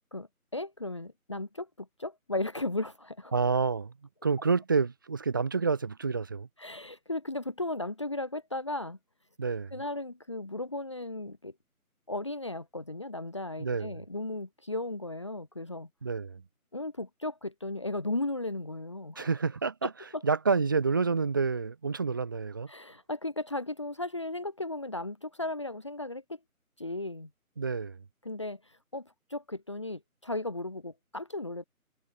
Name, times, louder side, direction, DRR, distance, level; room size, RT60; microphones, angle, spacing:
voice 1, 0.1-3.3 6.6-9.0 9.7-11.5 12.1-15.9 16.7-19.3 19.8-20.2 22.7-26.2 26.8-27.3 28.2-31.6, left 2 dB, 20° left, 2.0 m, -36 dB
voice 2, 3.3-3.9 4.2-6.5 9.4-9.8 13.6-14.0 16.0-16.4 19.1-22.7 27.6-28.0, right 4 dB, 15° right, 3.3 m, -29 dB
figure-of-eight pair, 180°, 44 cm